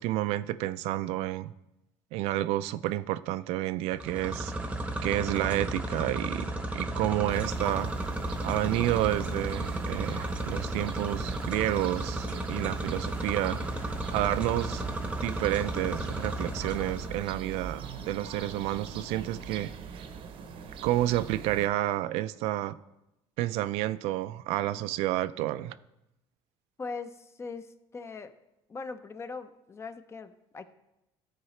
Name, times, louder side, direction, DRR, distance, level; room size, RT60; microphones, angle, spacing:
voice 1, 0.0-1.5 2.1-4.5 5.0-7.9 8.4-14.9 15.2-19.7 20.8-22.8 23.4-25.8, right 14 dB, 75° right, 15 dB, 0.4 m, -30 dB
sound 1, 3.9-17.3, right 1 dB, 10° right, 0.8 m, -34 dB
sound 2, 7.3-21.7, right 6 dB, 55° right, 0.7 m, -42 dB
sound 3, 13.5-19.6, left 3 dB, 65° left, 1.1 m, -52 dB
voice 2, 26.8-28.3 28.7-30.6, left 4 dB, 25° left, 11 dB, 0.6 m, -41 dB
13.0 x 4.8 x 3.2 m, 0.90 s
cardioid pair, 110°, 11 cm